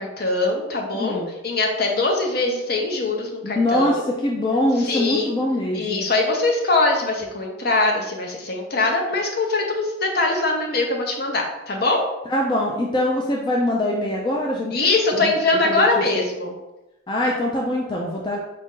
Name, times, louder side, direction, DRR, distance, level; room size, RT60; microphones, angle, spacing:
voice 1, 0.0-3.9 4.8-5.4 5.7-12.0 14.7-16.5, left 2 dB, 50° left, 1 dB, 0.7 m, -22 dB
voice 2, 0.9-1.3 3.4-6.1 12.3-14.7 15.1-15.3 15.6-16.2 17.1-18.4, left 1 dB, 25° left, -2 dB, 0.3 m, -23 dB
4.2 x 2.5 x 3.7 m, 0.97 s
head